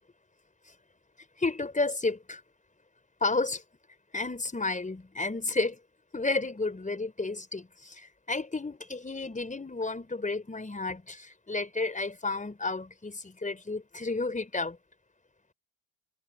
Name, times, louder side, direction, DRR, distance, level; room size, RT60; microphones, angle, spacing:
voice 1, 1.4-2.4 3.2-3.6 4.1-5.8 6.1-14.8, left 3 dB, 20° left, 5.0 m, -32 dB
supercardioid pair, 65°, 41 cm